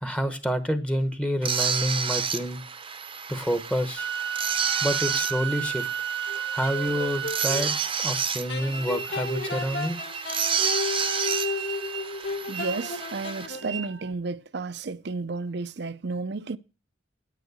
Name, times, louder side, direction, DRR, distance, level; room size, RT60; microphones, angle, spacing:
voice 1, 0.0-2.6 3.3-4.1 4.8-5.9 6.5-7.7 8.0-10.0, equal, 5° left, 0.9 m, -28 dB
sound 1, 1.4-13.5, right 7 dB, 30° right, 0.8 m, -30 dB
sound 2, 4.0-7.7 8.4-14.1, right 8 dB, 90° right, 1.0 m, -34 dB
sound 3, 6.3-7.7 8.5-13.9, left 3 dB, 65° left, 2.4 m, -33 dB
voice 2, 12.5-16.6, right 3 dB, 60° right, 0.6 m, -32 dB
9.3 x 9.0 x 8.0 m
head